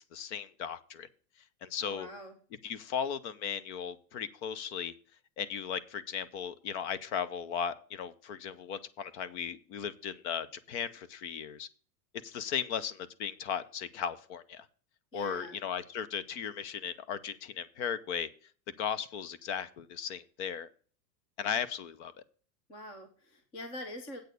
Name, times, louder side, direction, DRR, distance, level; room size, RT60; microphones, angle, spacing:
voice 1, 0.1-1.1 1.6-2.1 2.6-4.9 5.4-11.7 12.2-14.7 15.1-18.3 18.8-20.7 21.4-22.1, left 7 dB, 45° left, 16 dB, 0.8 m, -36 dB
voice 2, 1.8-2.3 15.1-15.6 22.7-24.2, equal, 10° left, 6 dB, 0.4 m, -44 dB
8.2 x 6.3 x 6.6 m, 0.42 s
supercardioid pair, 170°, 49 cm